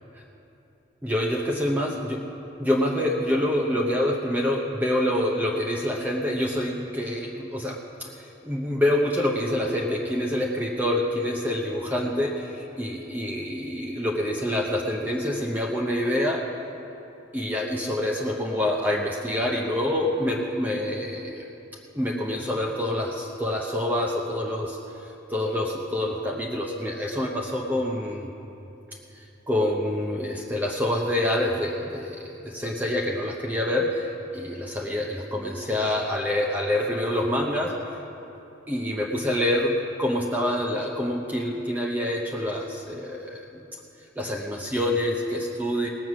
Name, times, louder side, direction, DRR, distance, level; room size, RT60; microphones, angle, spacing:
voice 1, 1.0-2.2 2.6-16.4 17.3-21.5 21.9-24.8 25.3-28.3 29.5-38.0 38.7-43.6 44.2-45.9, left 1 dB, 10° right, -1 dB, 0.8 m, -26 dB
18.5 x 7.8 x 6.2 m, 3.0 s
head